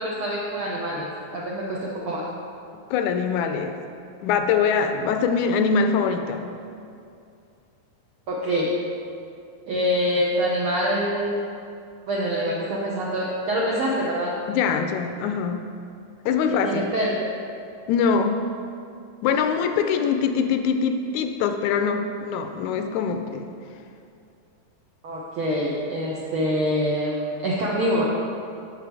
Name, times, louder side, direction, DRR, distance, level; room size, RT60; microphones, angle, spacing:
voice 1, 0.0-2.2 8.3-8.7 9.7-11.4 12.1-14.3 16.4-17.1 25.0-28.1, equal, 75° right, -5 dB, 1.2 m, -25 dB
voice 2, 2.9-3.8 4.2-6.5 14.5-15.6 16.3-16.9 17.9-18.5 19.2-23.5, left 6 dB, 80° left, 6 dB, 1.9 m, -23 dB
7.6 x 6.8 x 4.7 m, 2.5 s
omnidirectional pair, 3.5 m